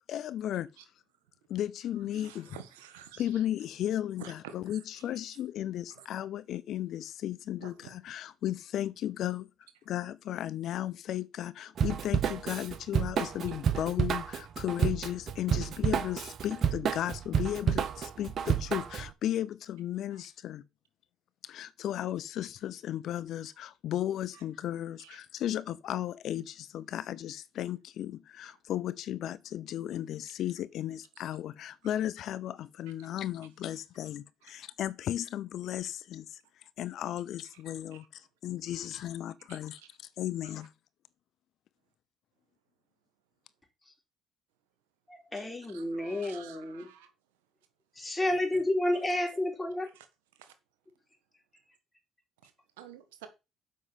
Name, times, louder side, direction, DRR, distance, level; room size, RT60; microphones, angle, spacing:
voice 1, 0.1-0.7 1.5-2.6 3.2-9.5 9.9-20.6 21.4-39.8 40.2-40.7, left 12 dB, 65° left, 0.5 m, -35 dB
voice 2, 2.1-3.4 4.2-5.2 5.9-6.1 7.6-8.0 20.1-20.3 24.3-24.4 25.0-25.2 37.9-38.1 38.7-38.9 39.5-39.6 40.4-40.7 45.4-47.1 48.0-48.6 49.9-50.1 50.4-50.5 52.4-52.5 52.8-53.3, right 9 dB, 85° right, 1.6 m, -51 dB
Drum kit / Drum, 11.8-19.1, right 7 dB, 55° right, 1.0 m, -30 dB
voice 3, 45.1-46.9 48.0-49.9, left 1 dB, 15° left, 3.9 m, -31 dB
7.4 x 5.4 x 7.2 m
hypercardioid pair, 60°, 0 cm